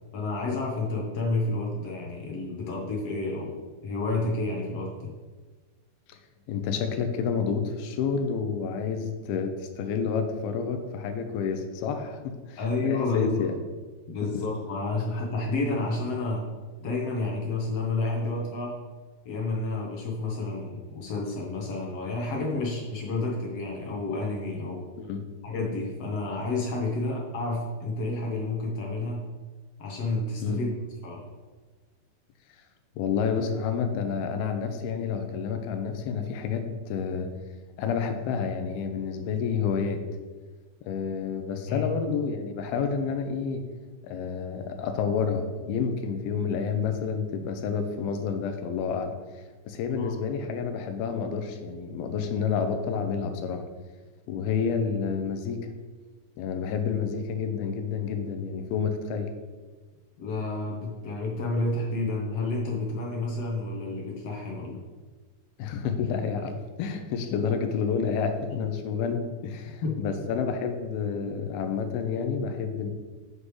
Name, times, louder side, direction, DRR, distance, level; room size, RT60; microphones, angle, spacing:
voice 1, 0.1-3.5 3.8-5.1 12.6-13.4 14.1-16.5 16.8-18.8 19.2-24.8 25.4-29.2 29.8-30.7 31.0-31.2 41.7-41.9 50.0-50.1 60.2-64.8 69.6-70.0, left 2 dB, 65° left, -2 dB, 1.6 m, -30 dB
voice 2, 6.5-13.5 14.2-14.4 25.0-25.2 30.4-30.6 33.0-37.3 37.8-40.0 40.9-43.6 44.0-49.1 49.7-53.6 54.3-55.6 56.4-59.3 65.6-72.9, left 6 dB, 90° left, 6 dB, 2.7 m, -29 dB
8.2 x 7.5 x 3.2 m, 1.4 s
omnidirectional pair, 4.3 m